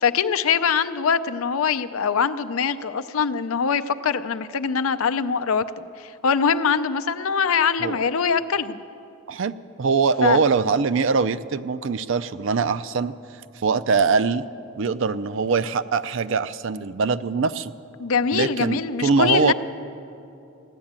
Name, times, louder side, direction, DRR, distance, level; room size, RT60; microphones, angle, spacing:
voice 1, 0.0-8.8 10.2-10.4 18.0-19.5, left 6 dB, 80° left, 12 dB, 0.5 m, -23 dB
voice 2, 9.8-13.1 13.6-14.5 14.8-17.7 18.3-19.5, right 5 dB, 60° right, 14 dB, 0.4 m, -22 dB
15.0 x 10.5 x 8.8 m, 2.7 s
head